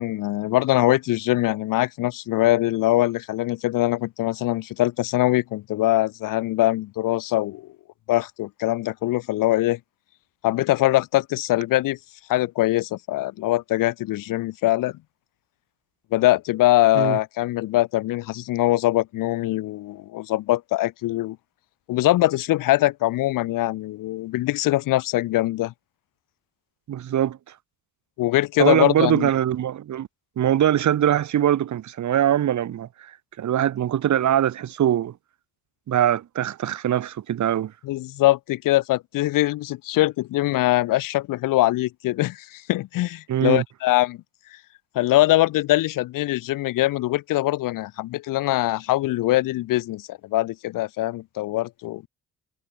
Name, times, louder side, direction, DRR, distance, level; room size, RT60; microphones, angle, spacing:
voice 1, 0.0-7.7 8.1-9.8 10.4-12.0 12.3-15.0 16.1-21.4 21.9-25.7 28.2-29.3 37.8-44.2 44.9-52.1, left 16 dB, 85° left, 0.7 m, -22 dB
voice 2, 26.9-27.4 28.6-30.1 30.4-33.1 33.4-35.1 35.9-37.7 43.3-43.6, right 11 dB, 60° right, 0.9 m, -22 dB
supercardioid pair, 60°, 32 cm